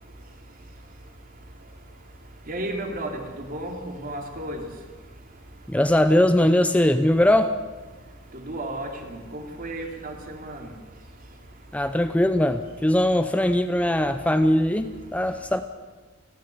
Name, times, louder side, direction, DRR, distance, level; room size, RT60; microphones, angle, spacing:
voice 1, 2.5-4.6 8.4-10.7, right 1 dB, 45° right, 3 dB, 3.4 m, -33 dB
voice 2, 5.7-7.5 11.7-15.6, left 1 dB, 5° left, 9 dB, 0.6 m, -20 dB
29.5 x 10.5 x 9.5 m, 1.3 s
head